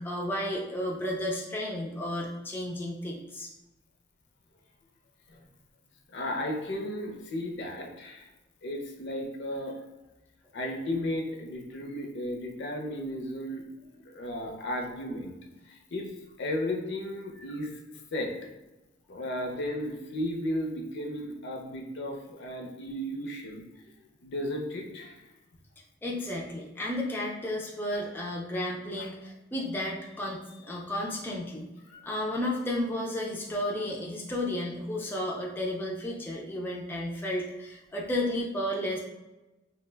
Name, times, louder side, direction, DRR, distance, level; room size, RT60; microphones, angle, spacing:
voice 1, 0.0-3.5 26.0-31.7 32.0-39.0, left 1 dB, 10° left, -3 dB, 0.3 m, -33 dB
voice 2, 6.1-8.3 8.6-9.8 10.5-13.6 14.1-15.3 15.7-16.1 16.4-17.7 18.1-18.5 19.1-23.6 24.2-25.1 29.0-29.1 31.9-32.0, left 1 dB, 65° left, 2 dB, 0.5 m, -34 dB
2.4 x 2.1 x 3.3 m, 1.0 s
head